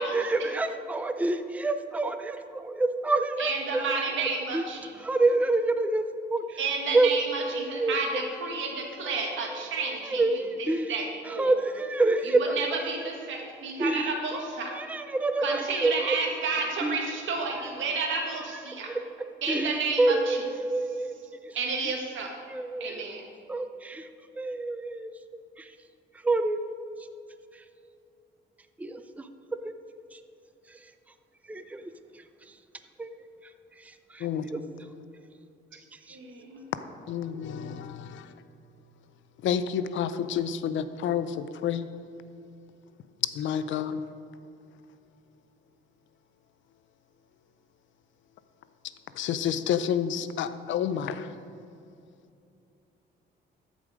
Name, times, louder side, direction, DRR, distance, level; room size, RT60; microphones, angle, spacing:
voice 1, 0.0-4.7 5.0-6.0 6.3-6.4 6.9-7.1 7.5-8.3 9.0-9.6 9.8-11.0 11.2-12.7 13.8-16.3 16.8-17.0 18.5-19.0 19.5-21.2 21.5-21.6 21.8-21.9 22.5-23.0 23.5-24.1 24.4-25.1 25.6-25.7 26.2-26.6 28.8-29.3 29.6-29.7 30.1-30.2 30.7-30.8 31.5-31.9 33.0-33.1 34.1-34.6 36.1-36.2, right 2 dB, 5° right, 9 dB, 0.5 m, -28 dB
voice 2, 3.4-4.9 6.6-10.2 10.6-11.5 12.5-14.7 15.4-18.9 19.4-20.4 21.5-22.3 22.8-23.3 36.1-36.6, right 4 dB, 75° right, 1 dB, 1.8 m, -31 dB
voice 3, 37.1-38.2 39.4-41.9 43.4-44.0 49.2-51.2, left 8 dB, 75° left, 12 dB, 0.6 m, -29 dB
13.5 x 5.2 x 5.0 m, 2.6 s
cardioid pair, 90°, 20 cm